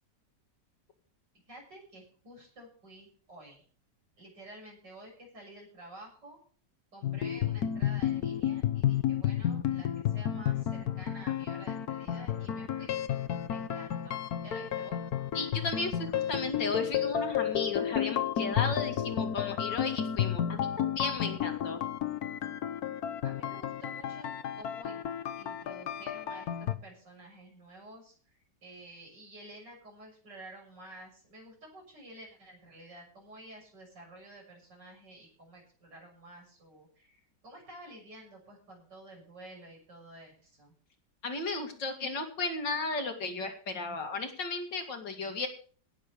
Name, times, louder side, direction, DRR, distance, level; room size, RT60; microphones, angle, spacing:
voice 1, 1.5-3.6 4.2-6.4 6.9-12.9 13.5-15.0 23.2-25.0 25.4-40.7, right 1 dB, 75° right, -1 dB, 7.4 m, -51 dB
sound 1, 7.0-26.7, left 10 dB, 60° left, 1.3 m, -31 dB
voice 2, 15.3-21.8 41.2-45.5, left 3 dB, 90° left, 4 dB, 3.0 m, -35 dB
17.5 x 6.8 x 6.8 m, 0.43 s
omnidirectional pair, 1.9 m